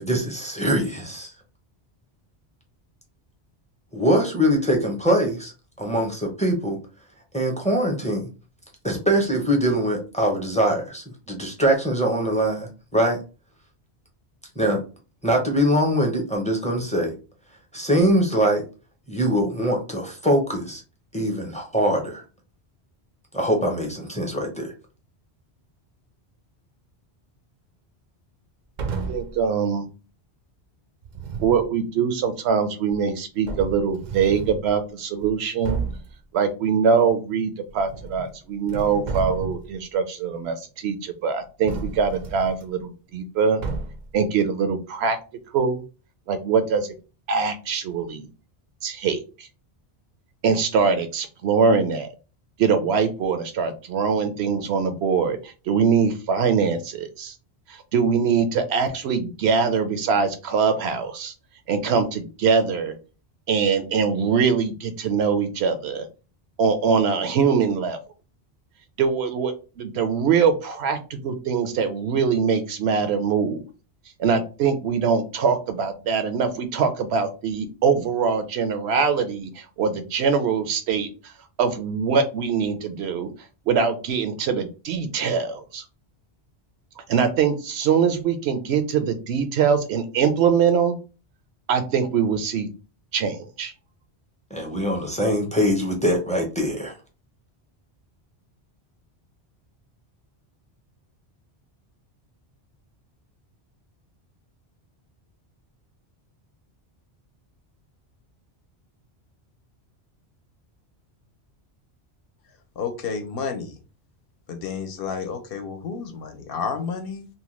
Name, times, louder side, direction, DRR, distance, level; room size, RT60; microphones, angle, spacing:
voice 1, 0.0-1.3 3.9-5.5 5.8-6.8 7.3-8.3 8.8-13.2 14.6-14.8 15.2-17.1 17.7-18.6 19.1-20.8 21.1-22.2 23.3-24.7 94.5-96.9, equal, 10° left, 0 dB, 0.5 m, -23 dB
sound 1, 28.8-29.4 31.0-31.7 32.9-33.0 33.5-34.7 35.2-35.3 35.6-36.1 37.7-38.3 38.6-39.8 41.7-42.6 43.6-44.1, right 4 dB, 55° right, 0.5 m, -32 dB
voice 2, 29.1-29.9 31.4-35.8 36.3-43.6 44.1-45.2 45.5-45.8 46.3-46.9 47.3-48.3 48.8-49.5 50.4-52.1 52.6-57.3 57.7-61.3 61.7-62.9 63.5-66.1 66.6-68.0 69.0-73.6 74.2-81.3 81.6-83.3 83.7-85.8 87.0-91.0 91.7-92.7 93.1-93.7, right 6 dB, 75° right, 9 dB, 0.8 m, -23 dB
voice 3, 112.8-113.8 114.5-117.3, left 5 dB, 65° left, 6 dB, 0.7 m, -31 dB
2.8 x 2.1 x 3.0 m, 0.32 s
omnidirectional pair, 1.1 m